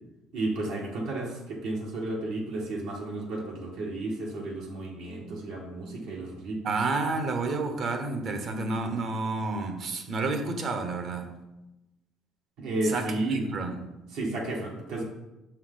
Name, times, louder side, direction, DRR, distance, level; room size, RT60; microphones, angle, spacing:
voice 1, 0.3-6.6 12.6-13.5 14.1-15.0, right 2 dB, 80° right, -3 dB, 1.7 m, -32 dB
voice 2, 6.6-11.3 12.8-13.8, right 3 dB, 55° right, 6 dB, 1.0 m, -30 dB
6.3 x 4.6 x 3.9 m, 0.98 s
supercardioid pair, 85°, 0 cm